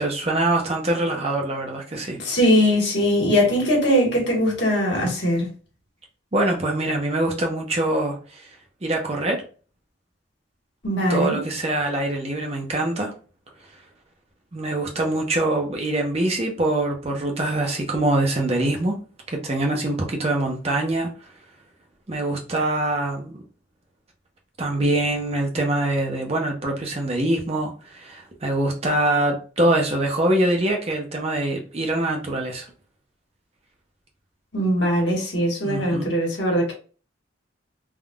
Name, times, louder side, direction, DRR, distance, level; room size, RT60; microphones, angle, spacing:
voice 1, 0.0-2.2 6.3-8.5 8.8-9.4 11.1-13.1 14.5-19.0 19.3-21.1 22.1-23.4 24.6-32.7 35.6-36.2, right 1 dB, 30° right, 0.7 m, -24 dB
voice 2, 2.2-5.5 10.8-11.4 34.5-36.7, equal, 60° left, 1.4 m, -21 dB
3.5 x 2.4 x 2.3 m
head